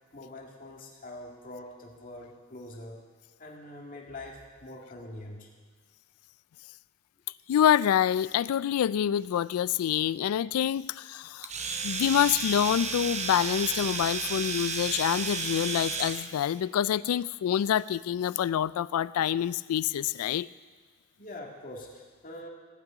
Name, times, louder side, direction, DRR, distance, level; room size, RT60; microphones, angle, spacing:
voice 1, 0.1-3.0 3.4-5.5 21.2-22.5, left 1 dB, 40° left, -1 dB, 2.0 m, -44 dB
voice 2, 7.5-11.5 11.8-20.5, left 9 dB, 85° left, 19 dB, 0.3 m, -26 dB
Domestic sounds home sounds, 11.4-16.3, right 5 dB, 30° right, 0.8 m, -32 dB
16.0 x 6.0 x 8.5 m, 1.5 s
head